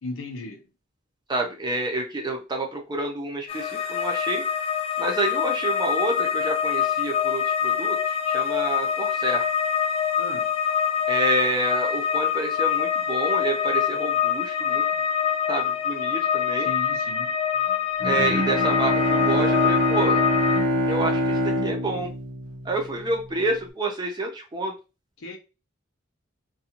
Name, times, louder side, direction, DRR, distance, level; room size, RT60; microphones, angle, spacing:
voice 1, 0.0-0.6 10.2-10.5 16.6-17.4 25.2-25.4, left 2 dB, 75° left, 0.6 m, -36 dB
voice 2, 1.3-4.4 5.0-9.5 11.1-14.8 15.5-16.7 18.0-20.2 20.9-22.1 22.6-24.7, right 2 dB, 20° right, 0.6 m, -28 dB
sound 1, 3.5-20.6, left 8 dB, 30° left, 0.3 m, -25 dB
Bowed string instrument, 18.0-22.9, equal, 70° right, 0.6 m, -24 dB
2.6 x 2.3 x 2.8 m
head